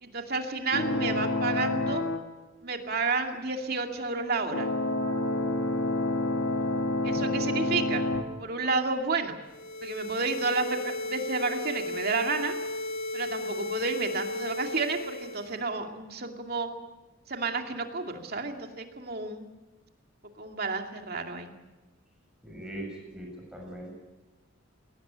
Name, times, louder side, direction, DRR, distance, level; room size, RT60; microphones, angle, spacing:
voice 1, 0.0-2.0 2.6-4.7 7.0-8.0 8.4-9.4 9.8-12.5 13.1-16.7 17.3-19.5 20.4-21.5, right 4 dB, 50° right, 4 dB, 2.5 m, -31 dB
sound 1, 0.7-2.2 4.5-8.2, left 2 dB, 85° left, 2.8 m, -28 dB
voice 2, 7.0-7.6 22.4-23.9, right 1 dB, 5° right, 0 dB, 6.9 m, -41 dB
sound 2, 9.5-15.6, left 2 dB, 40° left, 3.3 m, -35 dB
22.0 x 18.5 x 8.7 m, 1.1 s
head